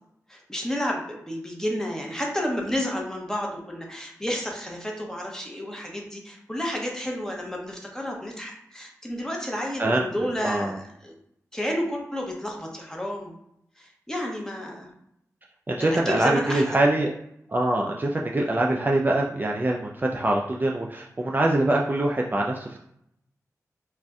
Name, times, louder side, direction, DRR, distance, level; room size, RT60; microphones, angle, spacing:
voice 1, 0.3-11.1 11.5-13.4 13.8-14.9 15.8-16.8, equal, 10° left, -1 dB, 0.8 m, -31 dB
voice 2, 10.4-10.8 15.7-17.1 17.5-22.8, right 1 dB, 30° right, -1 dB, 0.3 m, -24 dB
2.5 x 2.2 x 3.5 m, 0.75 s
cardioid pair, 45°, 6 cm